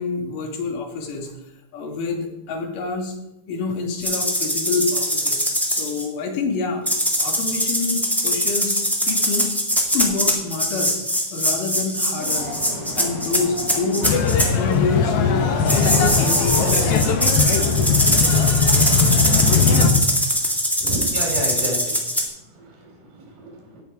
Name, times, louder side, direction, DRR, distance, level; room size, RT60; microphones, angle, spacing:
voice 1, 0.0-1.3 1.7-3.1 3.5-6.8 7.2-9.5 9.9-10.9 11.3-12.6 13.0-14.2 14.6-17.7 18.6-19.3 19.6-19.7, left 4 dB, 90° left, 3 dB, 3.2 m, -27 dB
sound 1, 4.0-6.0 6.8-14.5 15.7-22.2, equal, ahead, 0.4 m, -22 dB
sound 2, 12.2-17.3, left 1 dB, 35° left, 1.6 m, -32 dB
sound 3, 14.0-19.9, left 5 dB, 65° left, 1.6 m, -19 dB
voice 2, 20.8-22.0 22.6-22.9 23.1-23.8, right 2 dB, 75° right, 1 dB, 4.5 m, -30 dB
17.0 x 5.9 x 4.7 m, 0.91 s
omnidirectional pair, 3.7 m